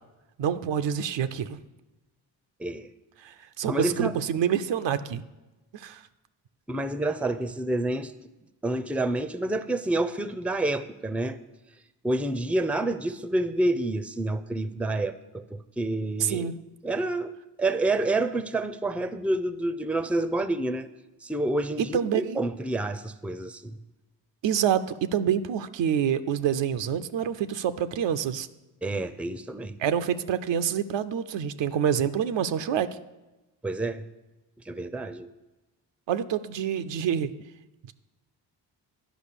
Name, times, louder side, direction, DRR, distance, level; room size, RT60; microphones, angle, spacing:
voice 1, 0.4-1.6 3.2-5.2 5.7-6.0 16.2-16.6 21.8-22.4 24.4-28.5 29.8-33.0 36.1-37.3, right 8 dB, 80° right, 11 dB, 0.6 m, -27 dB
voice 2, 3.7-4.2 6.7-8.1 8.6-11.4 12.0-16.5 16.8-20.9 21.2-23.8 28.8-29.7 33.6-34.0 34.7-35.3, right 2 dB, 5° right, 12 dB, 0.5 m, -28 dB
10.0 x 5.2 x 6.7 m, 1.1 s
cardioid pair, 55°, 44 cm